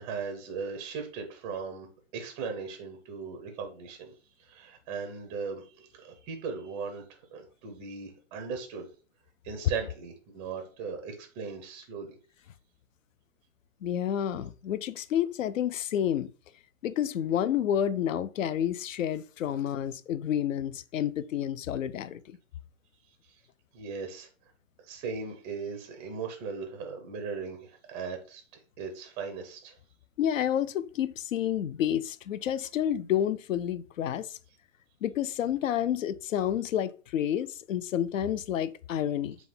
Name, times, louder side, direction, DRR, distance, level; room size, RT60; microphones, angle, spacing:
voice 1, 0.0-1.9 2.1-4.1 4.5-7.0 7.3-8.9 9.4-12.2 23.7-24.3 24.9-28.4 28.8-29.7, right 5 dB, 15° right, 0.4 m, -38 dB
voice 2, 13.8-16.3 16.8-22.4 30.2-34.4 35.0-39.4, left 10 dB, 80° left, 0.5 m, -29 dB
3.6 x 2.3 x 3.9 m
hypercardioid pair, 130°, 39 cm